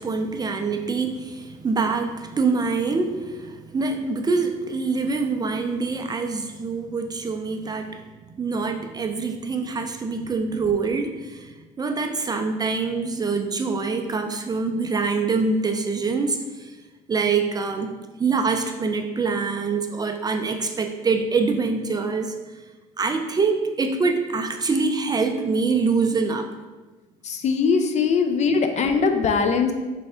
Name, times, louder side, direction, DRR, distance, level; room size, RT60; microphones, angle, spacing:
voice 1, 0.0-8.1 8.3-16.8 17.1-17.9 18.2-22.3 23.0-26.5, right 4 dB, 25° right, 5 dB, 0.3 m, -25 dB
voice 2, 27.2-29.7, left 5 dB, 45° left, 6 dB, 0.4 m, -21 dB
3.4 x 3.2 x 4.2 m, 1.3 s
cardioid pair, 110°, 17 cm